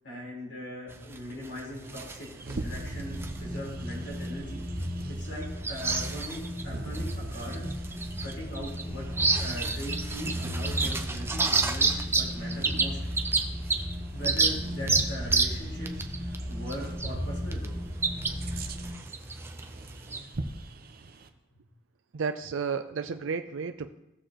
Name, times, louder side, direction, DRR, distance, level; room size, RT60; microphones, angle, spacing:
voice 1, 0.0-4.6 5.1-7.7 8.2-13.0 14.1-17.8, equal, 65° left, -5 dB, 4.1 m, -40 dB
sound 1, 0.9-20.2, right 4 dB, 10° right, 0.5 m, -31 dB
Bird vocalization bird call bird song, 1.8-21.3, right 2 dB, 50° right, 0.7 m, -41 dB
sound 2, 2.6-18.9, equal, 5° left, 4.0 m, -36 dB
voice 2, 22.1-23.9, right 5 dB, 85° right, 8 dB, 0.4 m, -32 dB
17.0 x 6.6 x 3.0 m, 0.91 s
head